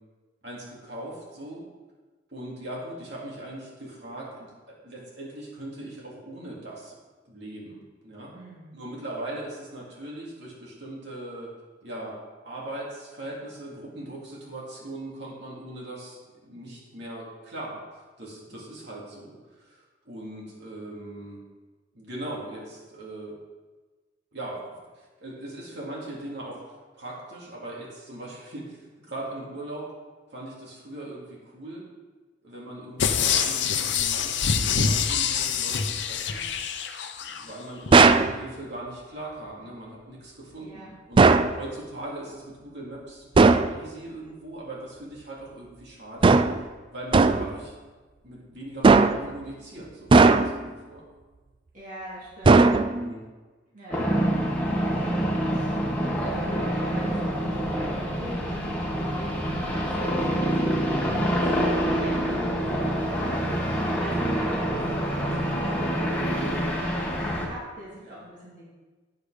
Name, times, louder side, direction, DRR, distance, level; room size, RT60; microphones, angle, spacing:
voice 1, 0.4-1.6 2.3-6.9 7.2-8.3 8.7-11.5 11.8-12.1 12.4-21.4 21.9-23.3 24.3-29.9 30.3-31.8 32.4-36.5 37.3-46.3 46.9-47.8 48.2-51.0 52.9-53.2 62.2-62.3 62.6-62.9 68.0-68.3, right 1 dB, 60° right, -5 dB, 2.9 m, -40 dB
voice 2, 8.3-8.8 40.6-40.9 51.7-52.7 53.7-54.3 55.0-55.8 56.2-61.5 62.0-63.7 64.0-68.7, right 1 dB, 45° right, -7 dB, 2.6 m, -43 dB
sound 1, 33.0-37.4 37.9-38.0, left 7 dB, 65° left, 0.7 m, -25 dB
sound 2, 37.9-38.3 41.2-41.6 43.3-43.7 46.2-46.6 47.1-47.5 48.8-49.3 50.1-50.7 52.4-53.1, right 3 dB, 25° right, 0.3 m, -17 dB
sound 3, 53.9-67.5, equal, 10° left, 1.7 m, -26 dB
9.4 x 8.4 x 5.0 m, 1.3 s
head